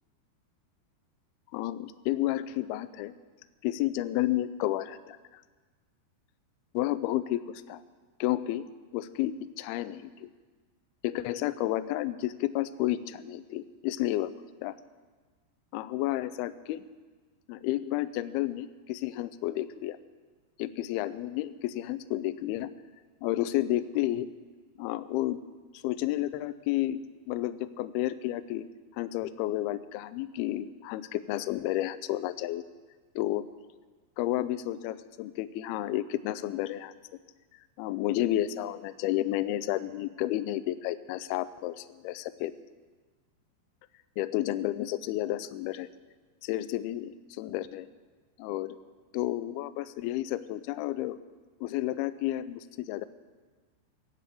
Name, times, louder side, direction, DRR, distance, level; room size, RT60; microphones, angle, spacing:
voice 1, 1.5-3.1 3.6-5.2 6.7-7.8 8.2-8.7 8.9-10.3 11.0-14.3 14.6-14.8 15.7-16.8 17.5-20.0 20.6-22.7 23.2-24.3 24.8-25.4 25.8-28.7 28.9-32.6 33.2-33.5 34.2-36.9 37.8-42.5 44.2-45.9 46.4-47.9 48.4-48.8 49.1-51.2 51.6-53.1, left 14 dB, 85° left, 13 dB, 2.2 m, -31 dB
20.0 x 8.6 x 7.7 m, 1.4 s
omnidirectional pair, 5.1 m